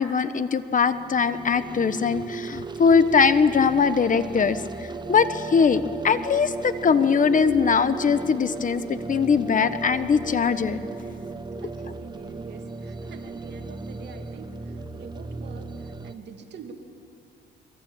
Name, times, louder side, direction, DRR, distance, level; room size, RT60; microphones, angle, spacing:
voice 1, 0.0-4.6 5.1-10.8, left 6 dB, 40° left, 12 dB, 1.2 m, -21 dB
sound 1, 0.9-16.1, right 4 dB, 20° right, 1.2 m, -36 dB
voice 2, 11.6-14.5 14.9-16.7, right 5 dB, 60° right, 4 dB, 2.6 m, -45 dB
23.5 x 23.5 x 9.0 m, 2.4 s
cardioid pair, 90°, 20 cm